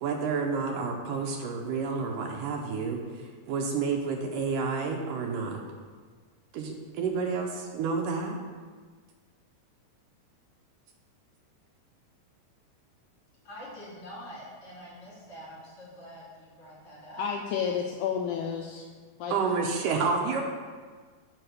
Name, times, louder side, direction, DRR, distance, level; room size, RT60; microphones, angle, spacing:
voice 1, 0.0-5.6 6.5-8.4 19.3-20.4, right 5 dB, 75° right, 2 dB, 2.3 m, -30 dB
voice 2, 13.4-17.3 19.4-19.6, equal, 40° left, -7 dB, 3.9 m, -45 dB
voice 3, 17.2-18.9 19.2-19.4, left 7 dB, 85° left, 2 dB, 1.8 m, -31 dB
7.8 x 5.7 x 6.5 m, 1.5 s
omnidirectional pair, 4.1 m